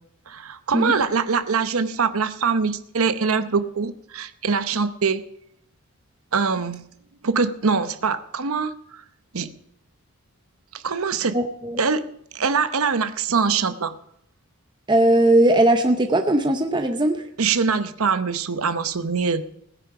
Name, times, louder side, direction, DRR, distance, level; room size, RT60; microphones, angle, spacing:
voice 1, 0.3-5.2 6.3-6.8 7.2-9.0 9.3-9.5 10.7-11.4 11.8-12.0 12.3-14.0 17.4-19.5, right 5 dB, 80° right, 11 dB, 0.8 m, -23 dB
voice 2, 11.3-11.8 14.9-17.2, right 1 dB, 20° right, 5 dB, 0.7 m, -19 dB
17.5 x 10.0 x 4.9 m, 0.73 s
head